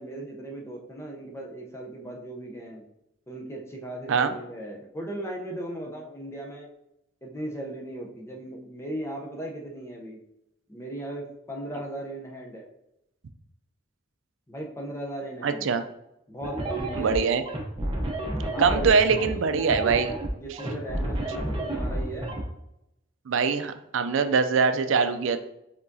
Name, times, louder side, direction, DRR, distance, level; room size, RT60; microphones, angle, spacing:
voice 1, 0.0-2.8 3.3-6.7 7.2-10.2 10.7-12.7 14.5-15.7 16.3-17.2 18.4-19.6 20.4-22.4, right 1 dB, 15° left, -1 dB, 0.7 m, -37 dB
voice 2, 15.4-15.8 17.0-17.4 18.6-20.1 23.3-25.4, right 5 dB, 70° right, 9 dB, 0.4 m, -23 dB
sound 1, 16.4-22.4, right 1 dB, 25° right, 0.7 m, -30 dB
4.8 x 3.6 x 2.7 m, 0.84 s
head